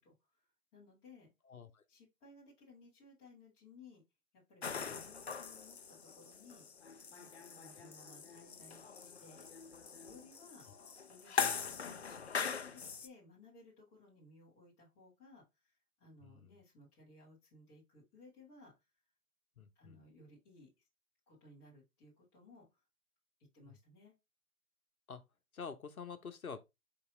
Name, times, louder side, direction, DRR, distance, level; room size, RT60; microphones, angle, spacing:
voice 1, 0.0-1.3 1.9-4.0 4.3-6.7 7.1-9.5 10.0-10.7 11.1-18.7 19.7-20.7 21.3-22.8 23.5-24.1, left 3 dB, 10° left, 1.1 m, -60 dB
voice 2, 1.5-1.8 10.7-10.9 11.4-11.7 16.2-16.5 19.6-20.0 25.1-25.2 25.5-26.6, left 6 dB, 70° left, 0.9 m, -48 dB
sound 1, 4.6-13.1, left 6 dB, 50° left, 0.5 m, -41 dB
4.6 x 2.8 x 3.7 m
figure-of-eight pair, 150°, 45 cm